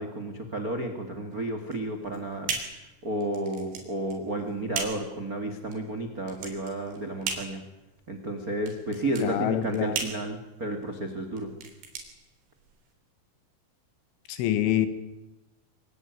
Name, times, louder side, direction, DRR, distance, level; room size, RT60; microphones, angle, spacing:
voice 1, 0.0-2.5 3.0-7.6 8.1-11.5, right 1 dB, 80° right, 6 dB, 0.8 m, -32 dB
sound 1, 1.6-12.9, right 5 dB, 60° right, 5.7 m, -38 dB
voice 2, 9.2-10.0 14.3-14.9, left 12 dB, 70° left, 12 dB, 3.8 m, -26 dB
24.5 x 17.0 x 9.5 m, 0.99 s
omnidirectional pair, 5.9 m